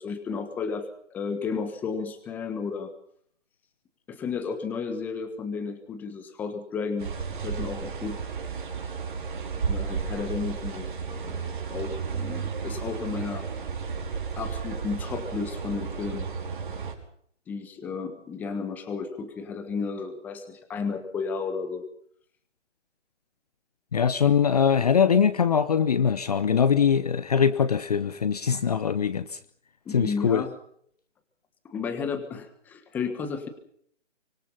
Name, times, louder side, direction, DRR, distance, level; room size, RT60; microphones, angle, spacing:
voice 1, 0.0-2.9 4.1-8.2 9.7-13.5 14.4-16.3 17.5-21.9 29.8-30.5 31.6-33.5, left 5 dB, 5° left, 9 dB, 1.3 m, -33 dB
sound 1, 7.0-16.9, right 6 dB, 45° right, 5.3 m, -33 dB
voice 2, 23.9-29.4 29.9-30.4, left 7 dB, 30° left, 14 dB, 0.9 m, -22 dB
24.5 x 23.5 x 5.8 m, 0.63 s
hypercardioid pair, 160°, 36 cm